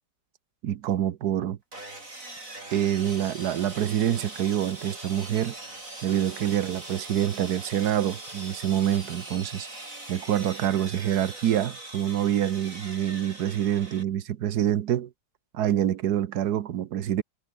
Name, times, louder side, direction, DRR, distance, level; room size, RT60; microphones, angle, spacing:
voice 1, 0.6-1.6 2.7-5.6 6.0-9.7 10.1-15.1 15.5-17.2, right 11 dB, 65° right, 1.4 m, -26 dB
Sawing, 1.7-14.0, right 2 dB, 45° right, 7.6 m, -41 dB
omnidirectional pair, 1.9 m